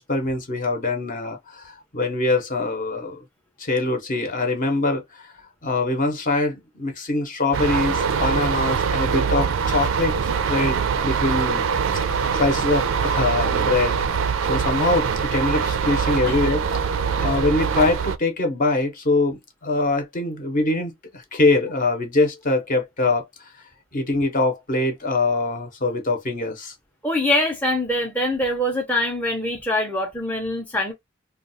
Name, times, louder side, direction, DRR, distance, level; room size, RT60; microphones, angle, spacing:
voice 1, 0.0-3.2 3.6-5.3 5.6-10.2 10.5-11.6 12.0-14.0 14.4-23.5 23.9-26.7, left 2 dB, 40° left, 0.8 m, -23 dB
sound 1, 7.5-18.2, right 6 dB, 65° right, 0.4 m, -23 dB
voice 2, 27.0-30.9, left 1 dB, 10° left, 0.5 m, -23 dB
2.3 x 2.3 x 4.0 m
head